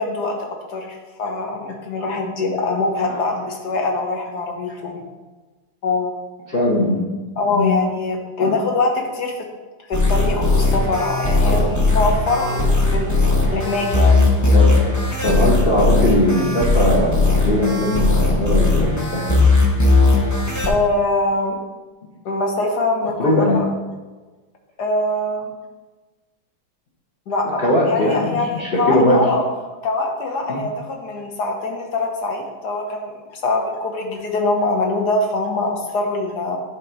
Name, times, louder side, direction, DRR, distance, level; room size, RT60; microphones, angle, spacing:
voice 1, 0.0-5.0 5.8-6.1 7.4-9.5 9.9-13.2 13.5-14.2 20.7-21.6 22.2-23.6 24.8-25.5 27.3-29.4 29.8-36.6, left 2 dB, 60° left, 1 dB, 1.4 m, -23 dB
voice 2, 6.5-7.0 7.5-7.8 8.4-8.5 11.5-11.7 14.5-14.8 15.2-19.4 23.2-23.6 27.6-29.2 30.5-30.6, left 1 dB, 35° left, -6 dB, 1.1 m, -20 dB
sound 1, 9.9-20.7, left 3 dB, 15° left, 0.6 m, -17 dB
10.0 x 3.7 x 4.5 m, 1.3 s
omnidirectional pair, 2.1 m